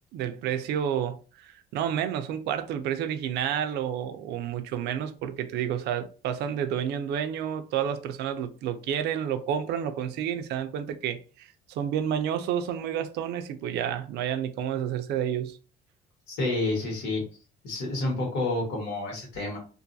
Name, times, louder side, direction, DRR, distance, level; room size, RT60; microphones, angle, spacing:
voice 1, 0.1-15.6, right 9 dB, 80° right, 0.4 m, -30 dB
voice 2, 16.3-17.2 17.6-19.6, left 2 dB, 90° left, 1.4 m, -29 dB
2.5 x 2.3 x 2.6 m
cardioid pair, 110°, 17 cm